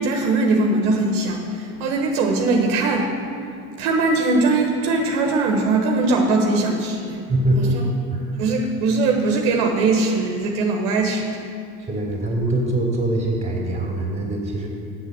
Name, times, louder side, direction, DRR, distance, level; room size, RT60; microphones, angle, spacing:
voice 1, 0.0-3.1 3.8-7.2 7.5-7.8 8.4-11.3, right 3 dB, 70° right, 1 dB, 1.3 m, -20 dB
voice 2, 7.3-7.8 8.1-8.4 11.8-14.7, right 1 dB, 15° right, -1 dB, 2.8 m, -23 dB
7.6 x 7.2 x 6.8 m, 2.4 s
hypercardioid pair, 80°, 45 cm